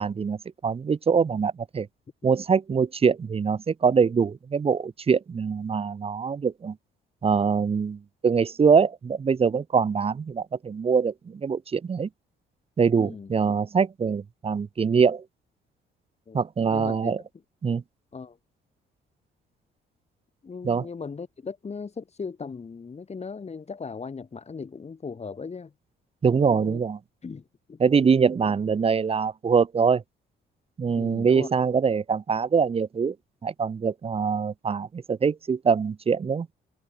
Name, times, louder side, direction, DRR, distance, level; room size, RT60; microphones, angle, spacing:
voice 1, 0.0-1.9 2.2-6.7 7.2-12.1 12.8-15.2 16.3-17.2 17.6-17.8 20.6-20.8 26.2-27.0 27.8-30.0 30.8-33.1 33.4-36.5, right 6 dB, 30° right, 0.7 m, -23 dB
voice 2, 12.9-13.6 16.3-16.4 16.7-17.2 18.1-18.4 20.4-25.7 26.3-26.8 27.2-27.8 31.0-31.5, left 5 dB, 35° left, 2.6 m, -38 dB
cardioid pair, 90°, 20 cm